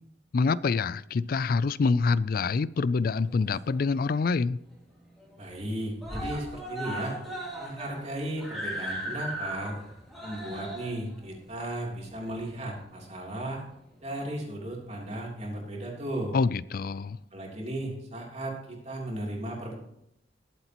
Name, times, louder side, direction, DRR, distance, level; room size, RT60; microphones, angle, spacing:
voice 1, 0.3-4.6 16.3-17.2, left 4 dB, 50° left, 0.4 m, -26 dB
Screaming, 3.1-4.0 4.4-4.5 4.8-4.9 5.2-5.7 6.0-12.8 13.7-13.8, right 1 dB, ahead, 2.9 m, -38 dB
voice 2, 5.4-7.1 7.6-9.8 10.2-13.6 14.0-16.3 17.3-19.7, right 1 dB, 35° right, 3.2 m, -35 dB
21.0 x 8.1 x 3.0 m
head